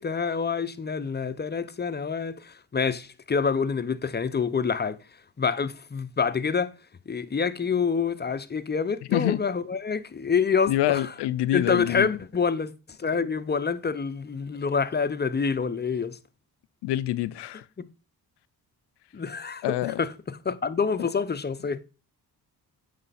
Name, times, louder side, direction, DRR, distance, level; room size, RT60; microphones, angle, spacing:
voice 1, 0.0-5.0 5.4-6.7 7.1-11.1 11.5-12.7 13.0-16.2 19.1-20.1 20.4-21.8, left 5 dB, 25° left, 0.6 m, -27 dB
voice 2, 9.1-9.4 10.7-12.1 16.8-17.6 19.6-20.0 21.0-21.1, left 15 dB, 80° left, 0.5 m, -26 dB
8.8 x 3.4 x 4.1 m
supercardioid pair, 55°, 40 cm